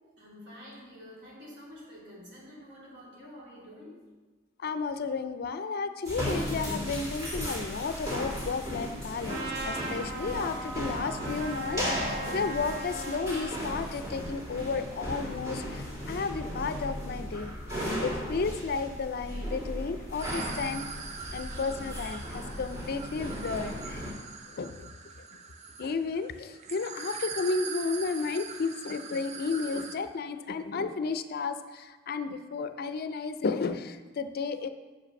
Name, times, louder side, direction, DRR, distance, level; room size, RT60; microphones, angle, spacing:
voice 1, 0.0-4.1, left 1 dB, 65° right, -6 dB, 2.6 m, -48 dB
voice 2, 4.6-17.6 18.0-20.9 21.3-24.0 24.6-24.7 25.8-34.7, left 4 dB, 55° left, 10 dB, 0.4 m, -33 dB
sound 1, 6.0-24.1, equal, 20° right, 2.3 m, -36 dB
Trumpet, 9.3-13.6, right 2 dB, 85° right, 1.0 m, -38 dB
sound 2, 20.2-30.0, right 5 dB, 35° right, 0.5 m, -42 dB
5.9 x 5.1 x 6.4 m, 1.3 s
head